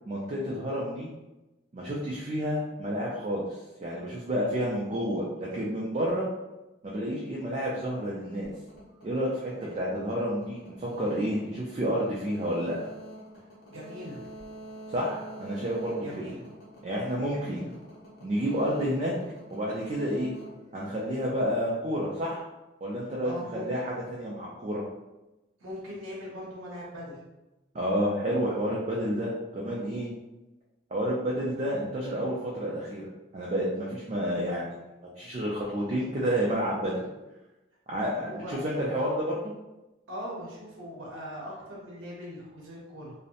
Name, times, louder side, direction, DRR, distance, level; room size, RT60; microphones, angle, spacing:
voice 1, 0.1-1.1 1.7-6.3 6.8-8.5 9.0-12.7 14.9-16.2 16.8-17.6 18.2-19.1 19.5-20.3 20.7-22.5 22.8-24.8 27.7-30.1 30.9-33.0 33.3-36.9 37.9-39.5, equal, 35° right, -5 dB, 0.3 m, -30 dB
sound 1, 7.7-21.5, right 1 dB, 50° left, 0.6 m, -46 dB
voice 2, 13.7-14.2 16.0-16.4 17.3-17.8 23.2-23.7 25.6-27.2 38.2-38.6 40.1-43.1, equal, 85° right, -4 dB, 0.7 m, -40 dB
2.7 x 2.0 x 2.5 m, 1.0 s
head